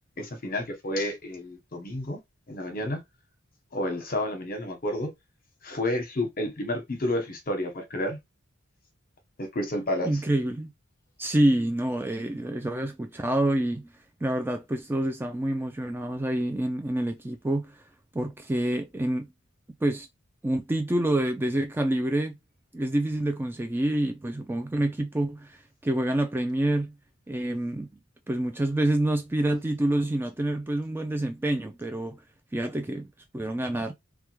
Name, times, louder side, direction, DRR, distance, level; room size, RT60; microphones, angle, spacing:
voice 1, 0.2-2.2 2.5-3.0 3.7-5.1 5.6-8.2 9.4-10.2, left 1 dB, 45° left, 1.0 m, -30 dB
voice 2, 10.0-10.7 11.2-13.9 14.2-17.8 18.1-19.3 19.8-20.1 20.4-22.4 22.7-26.9 27.3-27.9 28.3-32.2 32.5-33.1 33.3-33.9, right 1 dB, 10° right, 0.3 m, -27 dB
3.4 x 2.2 x 3.0 m
head